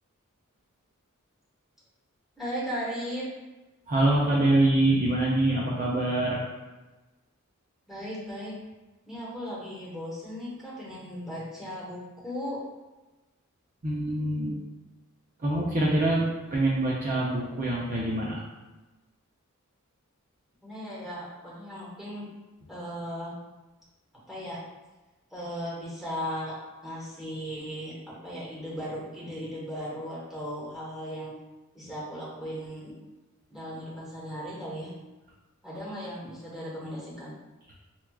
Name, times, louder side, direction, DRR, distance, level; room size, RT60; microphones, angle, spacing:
voice 1, 2.4-3.2 7.9-8.5 9.1-12.6 20.6-22.2 22.7-23.3 24.3-24.6 25.3-31.3 31.7-32.9 33.5-34.9 35.6-37.4, equal, ahead, -7 dB, 1.1 m, -37 dB
voice 2, 3.9-6.4 13.8-14.6 15.4-18.4, right 1 dB, 35° right, -5 dB, 0.5 m, -25 dB
5.9 x 2.3 x 2.3 m, 1.1 s
head